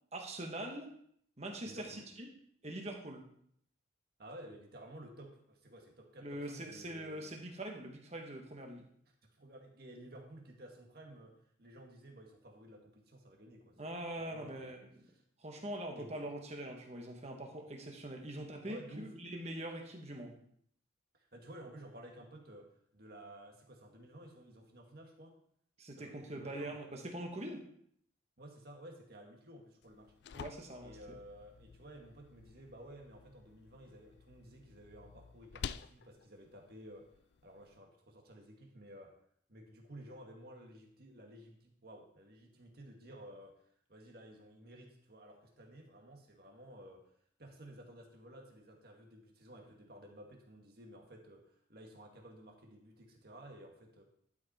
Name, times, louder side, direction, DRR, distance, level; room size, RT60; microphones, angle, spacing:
voice 1, 0.1-0.9 1.4-2.3 2.6-3.2 6.2-8.9 13.8-14.9 15.4-20.4 25.8-27.6 30.3-31.0, right 1 dB, 35° right, 2 dB, 1.5 m, -43 dB
voice 2, 1.6-2.0 4.2-7.4 9.3-14.7 15.9-16.3 18.6-19.1 21.1-25.3 26.0-26.8 28.4-30.1 30.8-37.0 37.4-39.1 39.5-43.6 43.9-47.0 47.4-54.0, right 1 dB, 55° right, 1 dB, 1.8 m, -54 dB
sound 1, 29.8-37.8, left 7 dB, 60° left, 0.3 m, -50 dB
11.5 x 5.7 x 4.3 m, 0.65 s
head